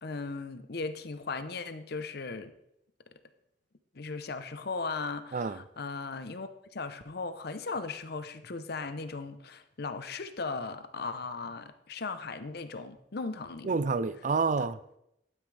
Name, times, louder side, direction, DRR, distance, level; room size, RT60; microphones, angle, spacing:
voice 1, 0.0-2.5 3.9-13.8 14.6-14.7, left 4 dB, 60° left, 0.8 m, -37 dB
voice 2, 13.6-15.0, right 4 dB, 45° right, 0.5 m, -29 dB
12.0 x 9.6 x 3.4 m
head